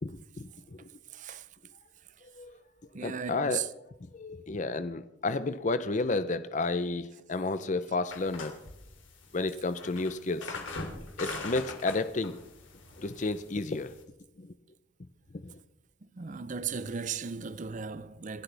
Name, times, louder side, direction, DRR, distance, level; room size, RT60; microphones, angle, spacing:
voice 1, 0.0-0.8 2.4-2.6 3.0-3.6 4.1-8.6 9.3-10.6 11.2-12.4 13.0-13.9 14.4-14.5 15.4-15.6, left 3 dB, 40° left, 0.6 m, -32 dB
voice 2, 1.1-1.5 2.2-2.3 2.9-3.7 11.2-11.4 13.7-13.9 16.0-18.4, right 6 dB, 40° right, 0.5 m, -37 dB
sound 1, 8.1-14.0, left 3 dB, 70° left, 2.7 m, -42 dB
27.0 x 12.0 x 3.4 m
head